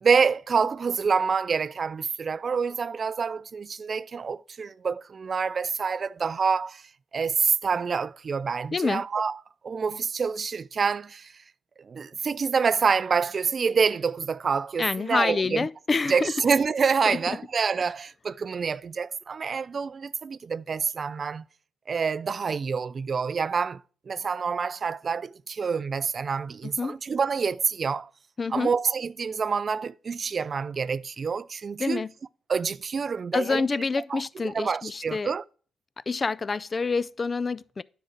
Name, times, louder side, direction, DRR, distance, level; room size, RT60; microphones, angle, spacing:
voice 1, 0.0-6.8 7.1-9.3 9.6-11.3 11.9-15.6 16.1-21.4 21.9-23.8 24.1-28.1 28.5-32.0 32.5-33.6 34.1-35.4, right 5 dB, 40° right, 0.3 m, -27 dB
voice 2, 8.7-9.0 14.8-16.3 17.1-17.4 26.6-27.0 28.4-28.7 31.8-32.1 33.3-35.3 36.1-37.8, left 4 dB, 30° left, 0.4 m, -27 dB
9.9 x 6.0 x 4.5 m
cardioid pair, 90°, 0 cm